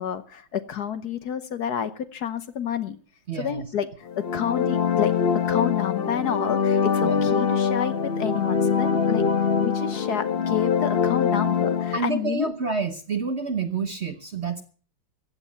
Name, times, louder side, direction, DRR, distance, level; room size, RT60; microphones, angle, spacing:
voice 1, 0.0-3.0 3.3-5.1 5.5-9.3 9.6-12.5, left 8 dB, 60° left, 12 dB, 1.3 m, -29 dB
voice 2, 3.3-3.7 7.0-7.2 11.9-14.6, right 5 dB, 45° right, 8 dB, 1.0 m, -28 dB
sound 1, 4.1-12.0, left 6 dB, 40° left, 0.9 m, -23 dB
15.0 x 9.6 x 7.0 m, 0.41 s
omnidirectional pair, 2.1 m